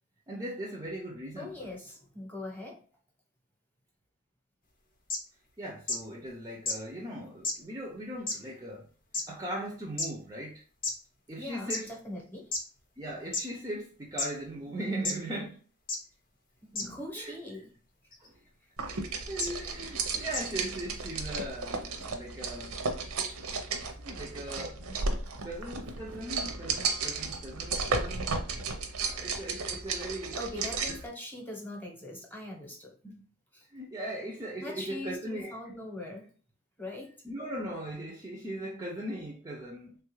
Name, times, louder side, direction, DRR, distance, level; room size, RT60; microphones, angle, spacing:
voice 1, 0.3-1.7 5.6-8.9 9.3-10.6 11.3-12.0 13.0-15.6 16.8-17.4 18.2-18.3 18.9-22.9 23.3-23.4 24.0-25.0 25.4-28.5 29.1-30.4 30.9-31.0 33.0-33.2 33.7-35.8 37.2-40.0, right 1 dB, 15° right, 0.4 m, -39 dB
voice 2, 1.4-2.8 11.4-12.5 16.6-17.7 29.1-29.2 30.3-32.9 33.5-33.7 34.6-36.3 36.8-37.2, left 1 dB, 10° left, 0.8 m, -41 dB
sound 1, 5.1-5.2 5.9-6.0 6.7-6.8 7.4-7.5 8.3-8.4 9.1-9.2 10.0-10.1 10.8-10.9 11.7-11.8 12.5-12.6 13.3-13.4 14.2-14.3 15.0-15.1 15.9-16.0 16.8-16.9 18.1-18.3 19.4-19.5 20.3-20.4, left 3 dB, 40° left, 0.6 m, -30 dB
sound 2, 18.8-31.1, right 4 dB, 90° right, 0.6 m, -34 dB
3.3 x 2.3 x 3.0 m
head